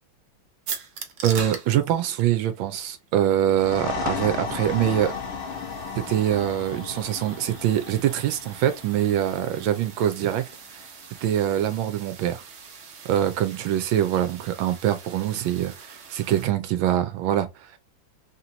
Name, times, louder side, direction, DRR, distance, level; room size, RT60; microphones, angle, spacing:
sound 1, 0.7-16.5, right 6 dB, 55° right, 0.9 m, -42 dB
voice 1, 1.2-5.1 6.0-10.4 10.7-10.8 11.2-12.4 13.1-17.8, right 11 dB, 85° right, 1.4 m, -24 dB
sound 2, 3.5-10.9, left 5 dB, 75° left, 1.5 m, -35 dB
3.7 x 2.9 x 3.8 m
omnidirectional pair, 2.1 m